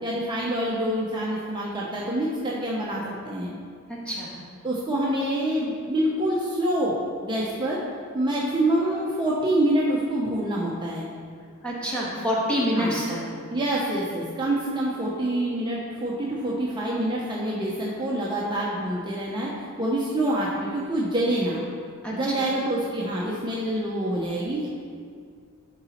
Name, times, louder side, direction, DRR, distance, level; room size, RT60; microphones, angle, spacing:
voice 1, 0.0-3.5 4.6-7.0 7.2-7.8 8.1-11.1 12.7-13.0 13.5-19.5 19.8-21.6 22.1-24.7, right 1 dB, 20° right, -5 dB, 0.8 m, -26 dB
voice 2, 11.6-13.2 22.0-22.5, equal, 5° left, -6 dB, 1.5 m, -27 dB
11.0 x 4.0 x 4.4 m, 2.1 s
head